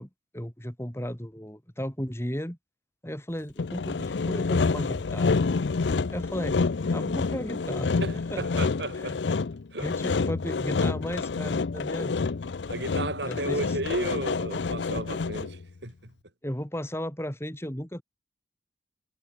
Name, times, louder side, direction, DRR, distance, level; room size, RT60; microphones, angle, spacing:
voice 1, 0.0-2.6 3.0-5.3 6.1-6.6 6.9-8.0 8.3-8.6 8.9-9.2 9.8-12.3 13.2-13.8 16.4-18.0, equal, 15° left, 3.3 m, -35 dB
Sawing, 3.6-15.6, left 4 dB, 80° left, 0.6 m, -28 dB
voice 2, 8.0-9.2 9.7-9.9 12.7-16.1, right 2 dB, 75° right, 3.9 m, -34 dB
head